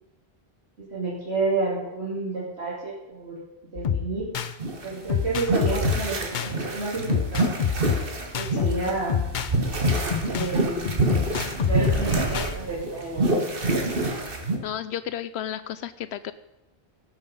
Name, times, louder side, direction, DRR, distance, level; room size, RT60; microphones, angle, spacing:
voice 1, 0.8-3.4 3.7-4.3 4.8-7.5 8.3-9.2 10.2-10.9 11.6-13.4, right 3 dB, 80° right, -8 dB, 3.4 m, -30 dB
sound 1, 3.8-4.5 5.1-6.5 7.1-9.5 9.8-12.5, left 7 dB, 50° left, 0.8 m, -27 dB
sound 2, 4.6-14.6, right 2 dB, 60° right, 1.9 m, -27 dB
sound 3, 9.4-12.9, right 4 dB, 40° right, 0.8 m, -35 dB
voice 2, 14.6-16.3, left 10 dB, 80° left, 13 dB, 0.8 m, -33 dB
17.5 x 7.3 x 5.4 m, 0.96 s
omnidirectional pair, 1.1 m